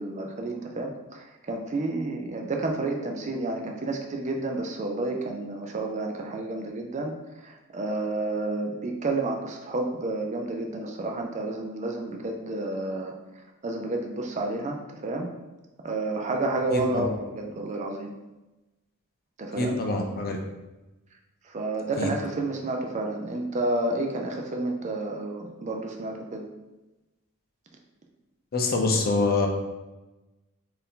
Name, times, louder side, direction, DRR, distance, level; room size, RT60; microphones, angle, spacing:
voice 1, 0.0-7.1 7.4-13.1 13.6-15.3 15.8-18.1 19.4-19.8 21.5-26.4, right 2 dB, 35° right, 2 dB, 0.4 m, -30 dB
voice 2, 16.7-17.1 19.6-20.4 22.0-22.1 28.5-29.5, left 3 dB, 45° left, 2 dB, 0.6 m, -25 dB
4.3 x 2.6 x 3.7 m, 1.1 s
head